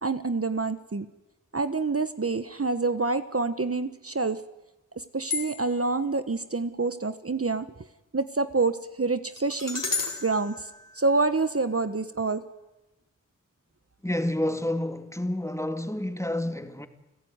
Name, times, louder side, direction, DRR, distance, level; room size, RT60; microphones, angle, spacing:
voice 1, 0.0-1.1 1.5-4.4 5.0-7.7 8.1-9.8 10.2-10.7 10.9-12.4, right 3 dB, 45° right, 1.2 m, -27 dB
sound 1, 5.3-5.9 9.4-11.6, left 4 dB, 75° left, 5.0 m, -34 dB
voice 2, 14.0-16.9, left 1 dB, 10° left, 2.3 m, -29 dB
29.5 x 16.5 x 9.6 m
wide cardioid pair, 45°, 32 cm